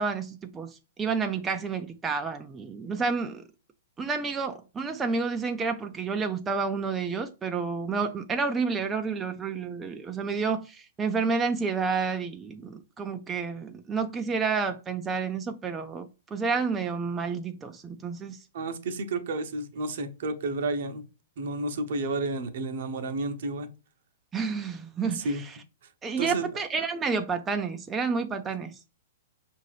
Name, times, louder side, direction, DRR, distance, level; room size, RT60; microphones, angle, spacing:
voice 1, 0.0-3.4 4.0-18.4 24.3-25.6 26.0-28.8, right 5 dB, 15° right, 0.4 m, -30 dB
voice 2, 18.5-21.0 21.4-23.7 25.1-25.4 26.2-26.5, right 2 dB, 60° right, 0.7 m, -31 dB
5.3 x 2.5 x 3.3 m
hypercardioid pair, 120°, 0 cm